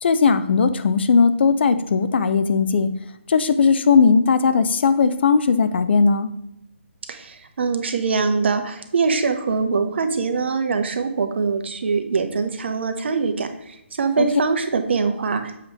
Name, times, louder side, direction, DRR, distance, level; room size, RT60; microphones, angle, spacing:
voice 1, 0.0-2.9 3.3-6.3 14.2-14.3, left 5 dB, 55° left, 10 dB, 0.6 m, -18 dB
voice 2, 7.1-15.7, right 4 dB, 60° right, 6 dB, 0.9 m, -23 dB
7.5 x 3.1 x 5.1 m, 0.83 s
hypercardioid pair, 150°, 7 cm